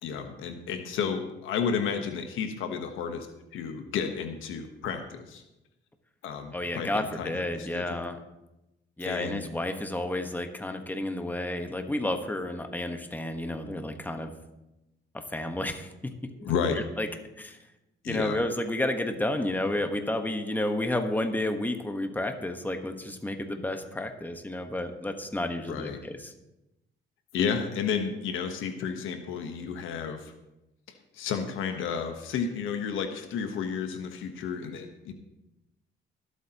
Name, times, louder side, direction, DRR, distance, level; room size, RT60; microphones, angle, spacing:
voice 1, 0.0-3.3 3.5-5.4 6.2-8.0 9.0-9.4 16.4-16.8 18.0-18.4 25.7-26.0 27.3-30.3 30.9-35.1, left 6 dB, 85° left, 7 dB, 1.2 m, -32 dB
voice 2, 6.5-8.2 9.0-14.3 15.1-15.9 17.0-17.1 17.4-17.6 18.1-26.2, left 1 dB, 10° left, 6 dB, 1.3 m, -31 dB
23.0 x 8.1 x 3.0 m, 0.94 s
cardioid pair, 90°, 20 cm